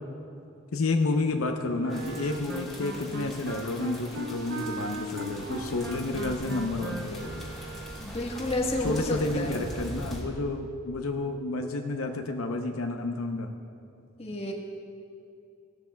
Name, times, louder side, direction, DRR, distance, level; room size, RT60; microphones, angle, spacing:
voice 1, 0.7-7.5 8.8-13.5, left 2 dB, 80° left, 4 dB, 0.7 m, -30 dB
Wind instrument woodwind instrument, 1.8-8.2, right 2 dB, 55° right, 0.9 m, -38 dB
sound 1, 1.9-10.2, equal, ahead, 2.8 m, -41 dB
voice 2, 8.0-9.6 14.2-14.5, left 1 dB, 30° left, -1 dB, 1.4 m, -30 dB
17.0 x 13.0 x 2.3 m, 2.6 s
head